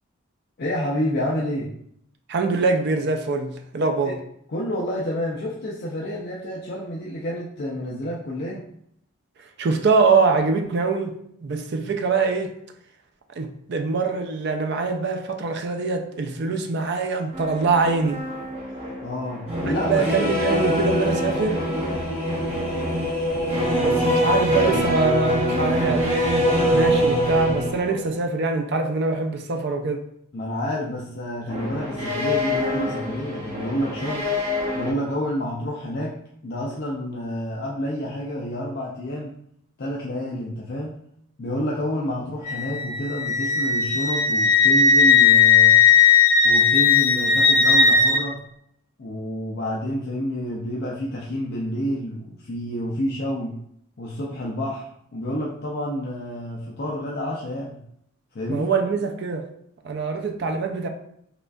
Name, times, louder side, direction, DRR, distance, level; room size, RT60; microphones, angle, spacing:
voice 1, 0.6-1.7 4.1-4.2 4.5-8.6 19.0-20.3 30.3-34.3 34.7-36.2 36.4-39.3 39.8-41.0 41.4-45.8 46.4-48.4 49.0-53.5 54.0-57.8 58.3-58.7, equal, 45° left, -3 dB, 0.4 m, -29 dB
voice 2, 2.3-4.2 9.4-12.5 13.4-18.2 19.6-21.7 23.8-30.0 58.5-59.5 59.8-60.9, right 4 dB, 50° right, 4 dB, 0.4 m, -24 dB
sound 1, 17.3-28.3 31.5-34.9, equal, 30° right, 0.9 m, -24 dB
Wind instrument woodwind instrument, 42.4-48.2, left 5 dB, 80° left, 0.9 m, -17 dB
4.9 x 2.4 x 2.3 m, 0.70 s
head